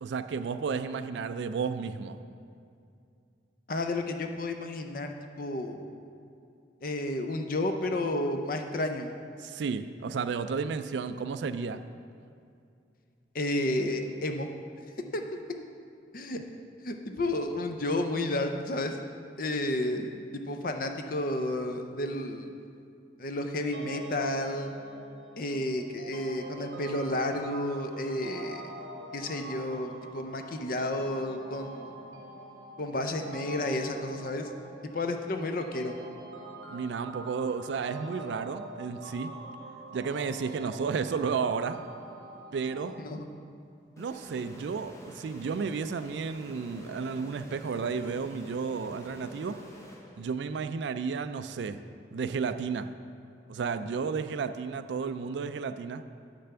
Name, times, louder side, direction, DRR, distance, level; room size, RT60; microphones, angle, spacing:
voice 1, 0.0-2.2 9.4-11.8 16.3-16.4 36.7-39.3 39.9-41.8 42.5-42.9 44.0-49.6 50.2-51.8 52.1-52.9 53.5-56.0, right 5 dB, 70° right, 11 dB, 0.3 m, -32 dB
voice 2, 3.7-5.9 6.8-9.1 13.3-14.5 15.1-15.2 16.1-16.4 16.8-19.0 19.4-20.2 20.5-22.5 23.2-24.7 25.4-28.7 29.1-32.0 32.8-34.5 34.9-35.9 43.0-43.3, left 1 dB, 45° left, 5 dB, 0.5 m, -31 dB
sound 1, 23.7-42.9, right 2 dB, 85° right, 1.0 m, -45 dB
sound 2, 44.0-50.6, equal, 15° left, 0.8 m, -48 dB
10.0 x 3.4 x 6.8 m, 2.4 s
head